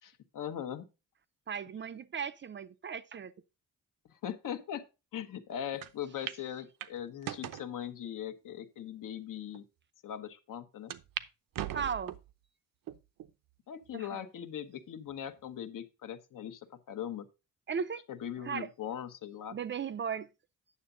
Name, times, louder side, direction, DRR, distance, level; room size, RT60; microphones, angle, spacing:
voice 1, 0.0-0.9 4.0-4.9 5.1-9.6 10.0-10.9 13.7-17.3 18.1-19.6, left 9 dB, 70° left, 1.1 m, -40 dB
voice 2, 1.5-3.3 11.7-12.2 13.9-14.2 17.7-18.0 18.4-18.7 19.5-20.3, right 6 dB, 35° right, 0.5 m, -36 dB
sound 1, 5.8-5.9 6.3-6.4 6.8-7.7 8.3-8.4 9.2-9.3 9.5-9.6 10.9-11.3 11.5-12.3 12.9-13.3 13.8-13.9 15.1-15.5, right 11 dB, 80° right, 0.8 m, -40 dB
9.4 x 7.0 x 3.8 m
wide cardioid pair, 155°, 33 cm